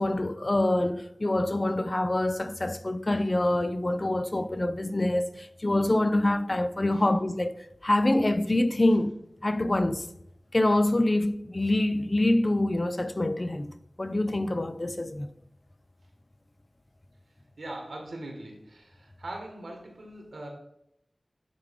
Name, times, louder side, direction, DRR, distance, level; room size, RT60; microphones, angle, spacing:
voice 1, 0.0-7.6 7.8-9.2 9.4-10.1 10.5-13.7 14.0-15.3, left 1 dB, 40° left, 0.5 m, -25 dB
voice 2, 17.6-20.5, right 1 dB, 85° right, 1.7 m, -41 dB
9.2 x 3.3 x 3.7 m
cardioid pair, 40°, 0 cm